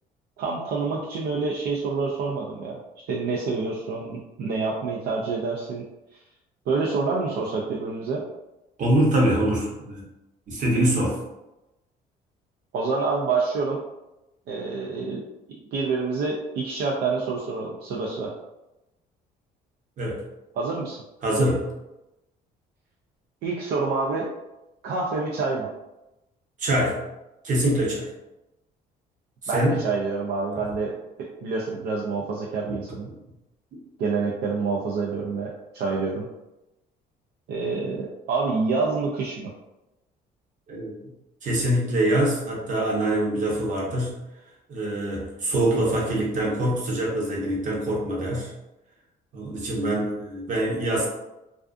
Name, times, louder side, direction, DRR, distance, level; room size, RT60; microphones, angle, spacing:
voice 1, 0.4-2.8 3.1-5.9 6.7-8.2 12.7-13.8 14.5-15.2 15.7-18.3 20.6-21.0 23.4-24.3 24.8-25.7 29.5-30.9 31.2-33.1 34.0-36.3 37.5-39.5, right 4 dB, 70° right, -3 dB, 0.4 m, -27 dB
voice 2, 8.8-10.0 10.5-11.2 20.0-20.2 21.2-21.7 26.6-27.0 27.4-28.1 29.4-29.8 30.5-30.6 32.7-32.8 40.7-40.9 41.4-44.2 44.7-48.5 49.3-51.1, right 1 dB, 50° right, -3 dB, 0.9 m, -24 dB
2.4 x 2.4 x 2.4 m, 0.97 s
cardioid pair, 110°, 17 cm